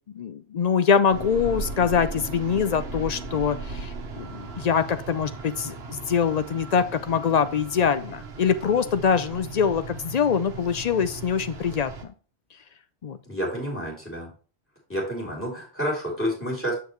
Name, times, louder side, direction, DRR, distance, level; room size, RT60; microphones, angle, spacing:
voice 1, 0.1-11.9 13.0-13.2, left 7 dB, 55° left, 12 dB, 0.5 m, -24 dB
sound 1, 1.1-12.0, right 3 dB, 70° right, 1.3 m, -37 dB
voice 2, 13.3-14.3 14.9-16.7, equal, 10° left, -2 dB, 3.3 m, -29 dB
6.9 x 6.5 x 3.1 m, 0.38 s
omnidirectional pair, 1.1 m